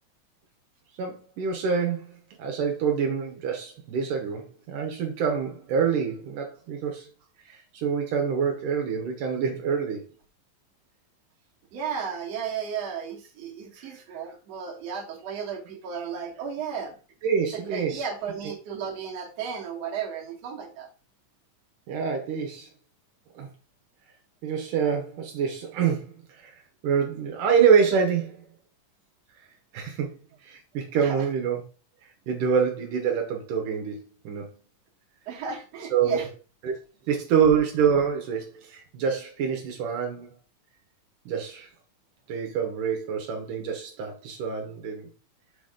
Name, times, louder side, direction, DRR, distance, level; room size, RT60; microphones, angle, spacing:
voice 1, 1.0-7.1 7.4-10.1 13.8-14.2 17.2-18.0 21.9-22.7 23.4-23.5 24.4-26.6 26.8-28.5 29.7-30.1 30.4-31.6 32.3-34.6 35.9-36.2 36.6-36.7 37.1-40.3 41.3-41.7 42.3-45.1, right 6 dB, 75° right, 2.6 m, -26 dB
voice 2, 11.7-17.0 17.5-20.9 30.9-31.3 35.3-36.3, right 7 dB, 55° right, 2.4 m, -34 dB
6.6 x 4.0 x 4.9 m
omnidirectional pair, 3.8 m